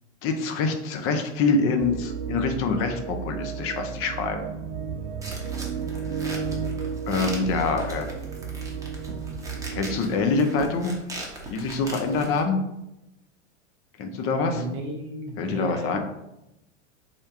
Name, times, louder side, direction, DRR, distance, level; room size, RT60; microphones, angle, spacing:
voice 1, 0.2-4.4 7.1-8.1 9.7-11.0 11.5-12.6 14.0-14.6 15.4-16.0, left 4 dB, 35° left, 5 dB, 0.7 m, -25 dB
sound 1, 1.8-10.0, right 7 dB, 70° right, 0.5 m, -33 dB
sound 2, 5.2-12.4, right 1 dB, 10° right, 0.9 m, -40 dB
voice 2, 14.5-16.0, right 1 dB, 35° right, 0 dB, 0.7 m, -34 dB
3.6 x 2.6 x 3.6 m, 0.89 s
hypercardioid pair, 100°, 37 cm